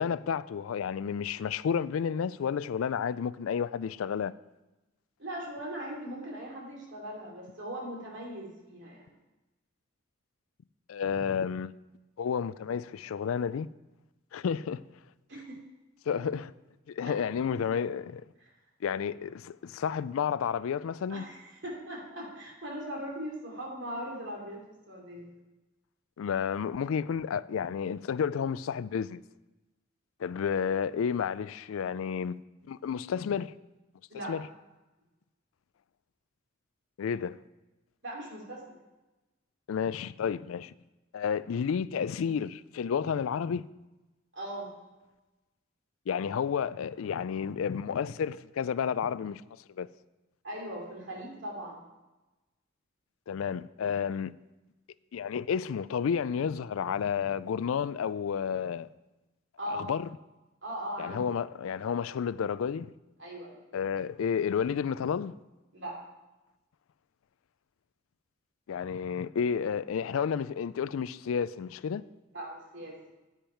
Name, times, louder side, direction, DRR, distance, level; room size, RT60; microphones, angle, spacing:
voice 1, 0.0-4.3 10.9-11.7 12.2-13.7 14.3-14.8 16.1-16.5 16.9-18.2 18.8-21.2 26.2-29.2 30.2-32.4 32.7-33.5 34.3-34.5 37.0-37.4 39.7-40.7 41.1-43.6 46.1-49.4 49.8-49.9 53.3-54.3 55.1-58.9 59.7-60.1 61.0-62.9 63.7-65.3 68.7-72.0, left 7 dB, 85° left, 0.4 m, -31 dB
voice 2, 5.2-9.1 15.3-15.6 17.1-17.2 18.4-18.5 21.1-25.3 34.1-34.3 38.0-38.8 44.3-44.7 50.4-51.8 59.6-59.9 60.6-61.2 63.2-63.6 65.7-66.0 72.3-73.0, right 1 dB, 60° right, 2.8 m, -39 dB
10.0 x 8.9 x 4.5 m
head